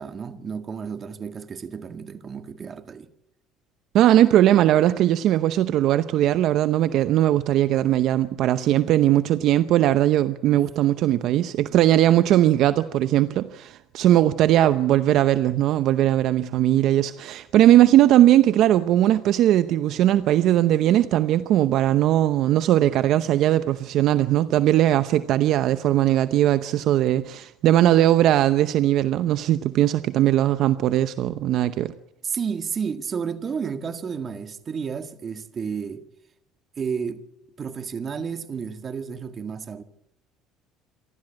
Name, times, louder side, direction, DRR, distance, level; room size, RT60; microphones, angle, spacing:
voice 1, 0.0-3.1 32.2-36.0 36.8-37.2 37.6-39.8, right 6 dB, 35° right, 1.7 m, -31 dB
voice 2, 3.9-31.9, right 13 dB, 65° right, 0.8 m, -19 dB
27.5 x 12.5 x 8.9 m
supercardioid pair, 100°, 0 cm